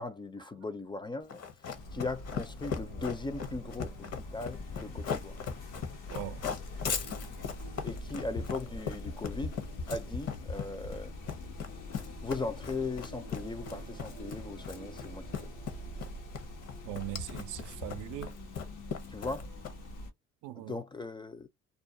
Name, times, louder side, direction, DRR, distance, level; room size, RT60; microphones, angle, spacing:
voice 1, 0.0-1.4 1.9-5.4 7.8-9.6 9.9-11.1 12.2-15.5 19.1-19.5 20.6-21.5, left 3 dB, 15° left, 0.4 m, -38 dB
Run, 1.3-20.0, left 6 dB, 55° left, 0.7 m, -39 dB
sound 1, 1.7-20.1, left 1 dB, 90° left, 0.9 m, -44 dB
sound 2, 2.6-5.3 6.8-11.1 12.4-17.3 17.6-17.7 18.3-18.4, right 7 dB, 35° right, 0.5 m, -56 dB
voice 2, 6.1-6.4 16.8-18.3 20.4-20.8, right 15 dB, 90° right, 0.5 m, -40 dB
2.4 x 2.1 x 2.5 m
cardioid pair, 90°, 30 cm